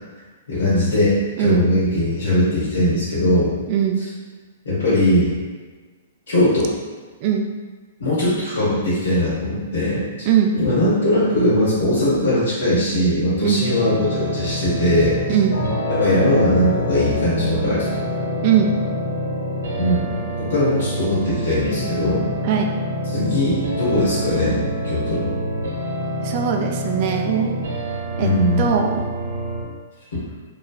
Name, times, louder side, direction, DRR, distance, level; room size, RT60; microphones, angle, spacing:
voice 1, 0.5-3.5 4.6-5.3 6.3-6.7 8.0-10.3 10.5-15.2 15.9-18.0 19.7-20.1 20.4-22.3 23.1-24.6 24.8-25.3 28.2-28.7 30.1-30.2, left 1 dB, 90° left, -11 dB, 1.4 m, -20 dB
voice 2, 1.4-1.7 3.7-4.0 7.2-7.5 10.3-10.5 13.4-13.6 15.3-15.6 18.4-18.7 22.4-22.7 26.2-27.6 28.2-28.3 28.6-29.0, right 8 dB, 45° right, 3 dB, 0.4 m, -20 dB
sound 1, 13.6-29.6, equal, 80° right, 0.7 m, -27 dB
sound 2, 15.5-28.5, left 3 dB, 65° left, 0.9 m, -32 dB
3.2 x 2.3 x 2.3 m, 1.4 s
hypercardioid pair, 135°, 0 cm